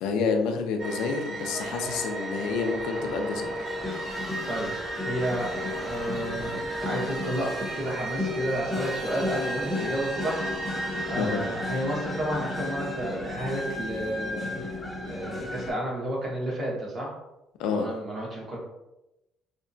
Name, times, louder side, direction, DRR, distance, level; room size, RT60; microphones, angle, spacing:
voice 1, 0.0-3.5 11.2-11.4 17.6-17.9, left 5 dB, 85° left, 4 dB, 0.4 m, -28 dB
sound 1, 0.8-13.3, right 2 dB, 70° right, 0.8 m, -36 dB
sound 2, 3.6-15.7, left 2 dB, 10° left, 0.7 m, -34 dB
voice 2, 5.0-5.6 5.8-14.7 15.0-17.1 17.7-18.6, right 1 dB, 35° right, -4 dB, 1.1 m, -31 dB
2.8 x 2.2 x 2.6 m, 0.93 s
cardioid pair, 110°, 0 cm